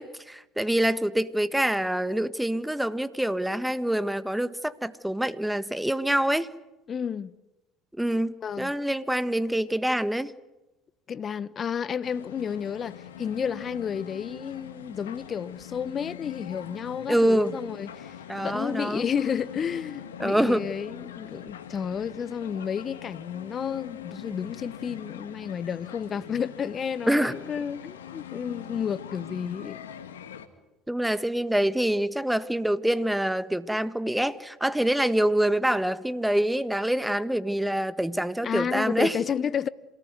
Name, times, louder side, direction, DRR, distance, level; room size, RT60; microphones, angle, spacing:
voice 1, 0.0-6.5 8.0-10.3 17.1-17.6 18.3-19.1 20.2-20.7 27.1-27.3 30.9-39.1, right 1 dB, 5° right, 1.5 m, -26 dB
voice 2, 6.9-7.3 8.4-8.7 11.1-29.8 38.4-39.7, left 7 dB, 40° left, 1.1 m, -31 dB
sound 1, 12.0-30.5, left 9 dB, 90° left, 1.8 m, -43 dB
27.5 x 19.0 x 9.4 m
hypercardioid pair, 70°, 0 cm